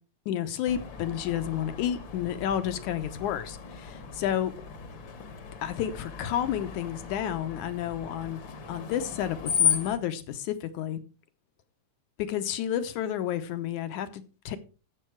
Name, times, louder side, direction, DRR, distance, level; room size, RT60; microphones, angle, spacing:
voice 1, 0.3-4.5 5.6-8.4 8.7-11.0 12.2-14.6, left 10 dB, 75° left, 10 dB, 2.2 m, -31 dB
Screech, 0.7-10.0, left 7 dB, 50° left, 1.5 m, -35 dB
14.0 x 7.0 x 4.6 m, 0.34 s
omnidirectional pair, 3.8 m